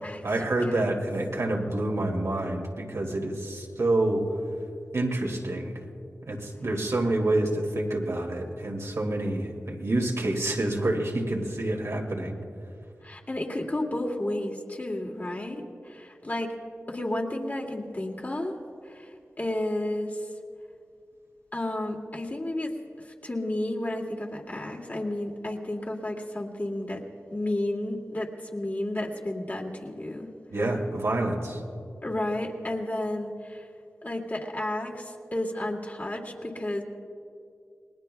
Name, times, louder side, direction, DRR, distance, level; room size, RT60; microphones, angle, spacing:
voice 1, 0.2-4.3 4.9-5.7 6.3-12.4 30.5-31.6, right 2 dB, 65° right, 0 dB, 2.3 m, -27 dB
voice 2, 13.0-16.5 16.9-18.5 18.8-20.2 21.5-22.7 23.1-27.0 27.3-30.3 32.0-33.7 34.0-36.8, left 1 dB, 35° left, 0 dB, 2.3 m, -32 dB
29.5 x 20.5 x 2.3 m, 2.4 s
wide cardioid pair, 75°, 5 cm